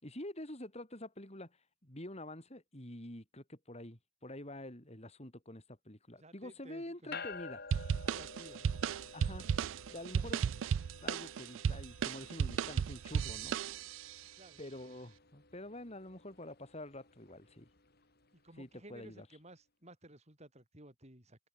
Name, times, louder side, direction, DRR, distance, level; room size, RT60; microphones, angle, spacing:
voice 1, 0.0-1.6 1.8-7.6 9.1-9.5 9.9-10.5 11.0-13.6 14.6-17.7 18.6-19.3, left 1 dB, 30° left, 4.5 m, -47 dB
voice 2, 6.2-7.3 8.0-8.8 14.4-14.6 18.3-21.4, right 1 dB, 35° right, 8.0 m, -56 dB
sound 1, 7.1-18.7, left 4 dB, 50° left, 7.7 m, -53 dB
sound 2, 7.7-14.1, right 7 dB, 70° right, 0.3 m, -35 dB
head